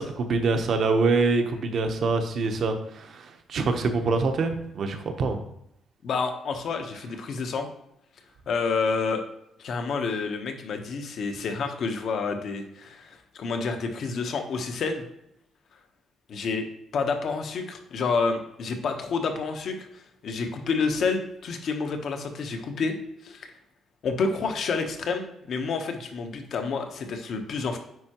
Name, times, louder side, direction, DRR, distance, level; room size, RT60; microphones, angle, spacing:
voice 1, 0.0-5.4, right 3 dB, 60° right, 6 dB, 0.9 m, -25 dB
voice 2, 6.0-7.7 8.5-9.2 9.6-15.0 16.3-16.7 16.9-22.9 23.2-23.5 24.0-27.8, left 4 dB, 65° left, 6 dB, 1.0 m, -29 dB
9.4 x 4.4 x 3.0 m, 0.80 s
cardioid pair, 90°, 0 cm